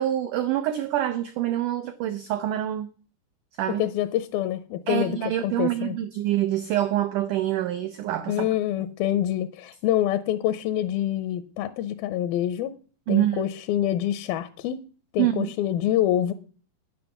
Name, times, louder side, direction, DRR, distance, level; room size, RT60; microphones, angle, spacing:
voice 1, 0.0-2.9 3.6-3.8 4.9-8.5 13.1-13.4 15.2-15.5, right 13 dB, 90° right, 1.8 m, -26 dB
voice 2, 3.8-6.0 8.3-12.8 13.1-14.8 15.1-16.3, left 12 dB, 80° left, 2.2 m, -26 dB
9.7 x 9.7 x 7.0 m
omnidirectional pair, 4.8 m